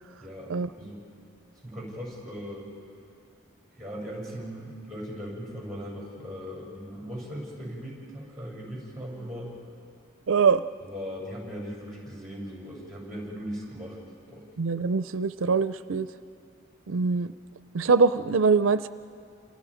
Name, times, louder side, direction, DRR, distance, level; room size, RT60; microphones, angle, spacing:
voice 1, 0.2-0.5 0.8-1.0 1.6-2.7 3.8-9.5 10.8-14.0 14.3-14.5, equal, ahead, -4 dB, 7.0 m, -38 dB
voice 2, 10.3-10.6 14.6-16.1 16.9-17.3 17.7-18.9, right 5 dB, 75° right, 13 dB, 0.5 m, -23 dB
29.0 x 27.5 x 5.1 m, 2.4 s
head